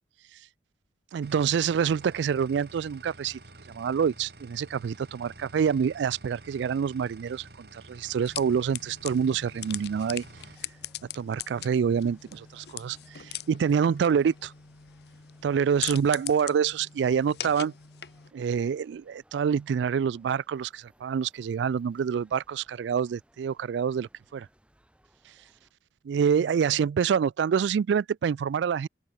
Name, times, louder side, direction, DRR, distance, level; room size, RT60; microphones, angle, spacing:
voice 1, 1.1-3.4 3.7-10.2 11.1-14.5 15.4-17.7 18.3-24.5 26.0-28.9, right 7 dB, 80° right, 0.3 m, -26 dB
sound 1, 1.2-10.6, right 2 dB, 60° right, 4.9 m, -50 dB
sound 2, 8.2-18.3, left 11 dB, 65° left, 1.0 m, -41 dB
sound 3, 9.9-25.7, equal, 5° right, 5.8 m, -63 dB
open air
head